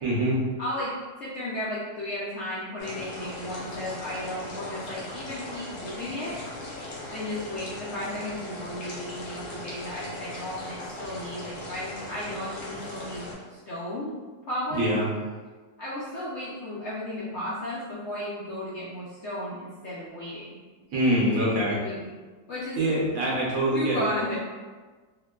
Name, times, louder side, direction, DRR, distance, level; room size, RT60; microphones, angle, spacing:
voice 1, 0.0-0.4 14.7-15.1 20.9-21.8 22.8-24.1, right 1 dB, 60° right, -6 dB, 1.1 m, -24 dB
voice 2, 0.6-0.9 1.2-6.4 7.1-14.1 14.5-14.9 15.8-20.6 21.8-22.0 22.5-22.8 23.7-24.4, left 1 dB, 65° left, -8 dB, 0.7 m, -34 dB
sound 1, 2.8-13.3, left 1 dB, 90° left, 1.5 m, -38 dB
4.4 x 2.1 x 2.3 m, 1.4 s
omnidirectional pair, 1.7 m